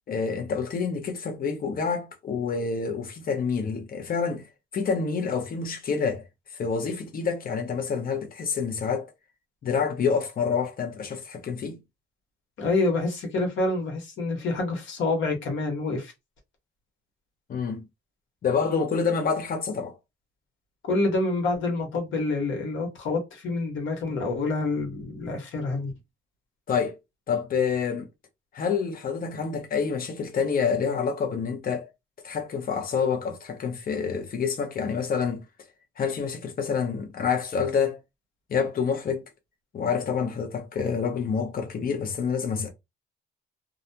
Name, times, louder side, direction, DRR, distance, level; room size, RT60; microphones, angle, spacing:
voice 1, 0.1-4.5 4.7-6.2 6.5-9.1 9.6-11.8 17.5-17.9 18.4-19.9 26.7-26.9 27.3-28.1 28.5-31.9 32.2-35.5 36.0-38.0 38.5-39.2 39.7-42.7, left 6 dB, 45° left, 0.8 m, -27 dB
voice 2, 12.6-16.1 20.9-25.9, left 2 dB, 75° left, 1.2 m, -27 dB
2.4 x 2.2 x 2.7 m
cardioid pair, 90°, 20 cm